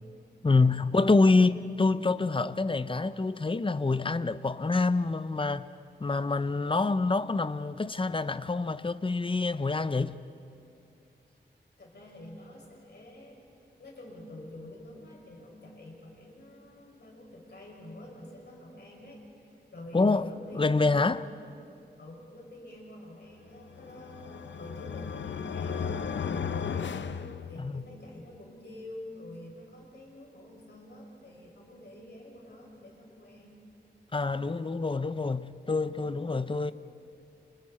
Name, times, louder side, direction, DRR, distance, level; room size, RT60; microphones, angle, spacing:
voice 1, 0.4-5.7 6.0-10.2 19.9-20.3 20.5-21.2 27.6-27.8 34.1-36.7, left 3 dB, 30° left, 0.7 m, -26 dB
voice 2, 11.8-13.4 13.8-21.1 22.0-33.5, left 1 dB, 65° left, 6.3 m, -47 dB
sound 1, 23.7-28.0, left 6 dB, 90° left, 0.7 m, -35 dB
30.0 x 29.0 x 4.4 m
wide cardioid pair, 80°, 19 cm